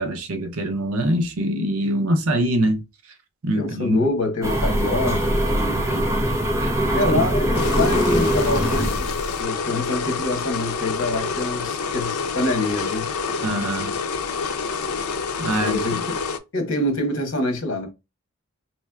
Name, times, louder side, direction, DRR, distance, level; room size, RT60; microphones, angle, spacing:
voice 1, 0.0-2.8 3.4-4.0 5.9-6.1 6.6-6.7 13.4-14.0 15.4-16.0, right 1 dB, 75° right, 0.7 m, -24 dB
voice 2, 3.6-6.1 6.9-9.1 9.4-13.1 15.5-16.1 16.5-17.9, left 2 dB, 60° left, 1.3 m, -25 dB
sound 1, 4.4-9.4, equal, 15° right, 0.5 m, -22 dB
sound 2, 7.5-16.4, left 5 dB, 90° left, 0.6 m, -27 dB
4.4 x 3.2 x 2.3 m
head